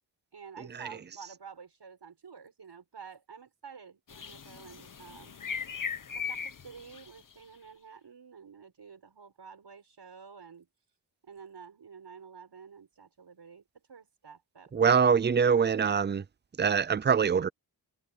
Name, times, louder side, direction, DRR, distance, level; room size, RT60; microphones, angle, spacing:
voice 1, 0.3-5.3 6.1-10.7 11.2-14.7, right 6 dB, 70° right, 6.5 m, -50 dB
sound 1, 4.1-7.3, left 6 dB, 50° left, 1.1 m, -38 dB
voice 2, 14.7-16.2 16.6-17.5, right 6 dB, 25° right, 0.5 m, -24 dB
wide cardioid pair, 115°, 42 cm